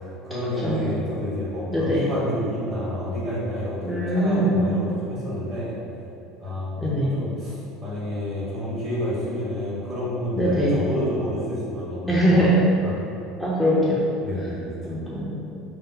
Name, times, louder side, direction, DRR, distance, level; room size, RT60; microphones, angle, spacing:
voice 1, 0.0-5.7 6.4-7.5 7.8-12.5 12.8-12.9 14.2-15.0, left 1 dB, 40° right, -8 dB, 1.1 m, -29 dB
voice 2, 1.7-2.1 3.9-4.6 6.8-7.1 10.4-10.8 12.1-12.5 13.4-14.1 14.8-15.3, equal, ahead, -8 dB, 0.4 m, -22 dB
2.5 x 2.0 x 3.7 m, 2.7 s
figure-of-eight pair, 70°, 0 cm